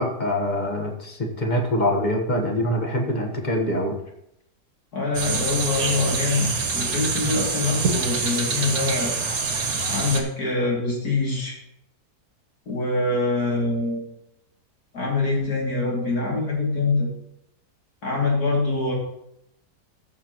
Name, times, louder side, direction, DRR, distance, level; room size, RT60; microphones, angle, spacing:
voice 1, 0.0-4.0, left 1 dB, 30° left, 2 dB, 1.3 m, -24 dB
voice 2, 4.9-9.1 9.9-11.6 12.7-14.0 14.9-17.1 18.0-18.9, left 3 dB, 65° left, -3 dB, 3.2 m, -24 dB
sound 1, 5.1-10.2, right 4 dB, 60° right, 1.7 m, -25 dB
14.5 x 6.5 x 3.0 m, 0.80 s
omnidirectional pair, 1.8 m